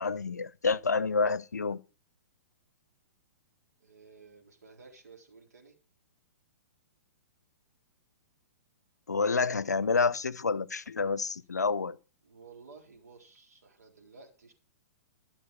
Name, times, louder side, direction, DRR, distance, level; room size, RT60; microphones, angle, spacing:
voice 1, 0.0-1.8 9.1-12.0, left 4 dB, 85° left, 0.6 m, -28 dB
voice 2, 3.8-5.8 12.2-14.5, right 4 dB, 75° right, 3.8 m, -54 dB
13.0 x 7.3 x 5.4 m
figure-of-eight pair, 115°, 9 cm